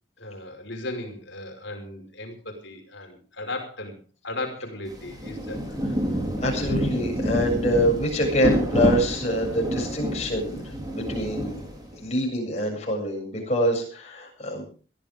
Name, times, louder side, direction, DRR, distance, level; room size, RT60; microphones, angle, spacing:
voice 1, 0.2-5.6, left 2 dB, 60° left, 3 dB, 5.3 m, -36 dB
Rain, 4.9-12.1, equal, 20° right, 4.3 m, -28 dB
voice 2, 6.4-11.5 12.0-14.6, equal, 35° left, 0 dB, 7.6 m, -25 dB
22.5 x 15.0 x 3.7 m, 0.38 s
head